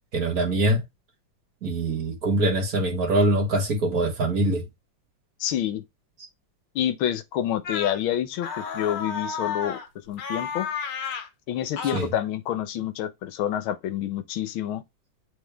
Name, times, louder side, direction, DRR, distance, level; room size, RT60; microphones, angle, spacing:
voice 1, 0.1-0.8 1.6-4.7 11.9-12.1, right 2 dB, 50° right, 1.8 m, -23 dB
voice 2, 5.4-5.8 6.7-9.8 10.1-10.7 11.5-14.8, left 11 dB, 80° left, 1.6 m, -28 dB
sound 1, 7.6-8.0 8.4-9.9 10.2-11.3 11.8-12.1, left 6 dB, 65° left, 1.7 m, -32 dB
8.5 x 3.8 x 3.4 m
omnidirectional pair, 2.2 m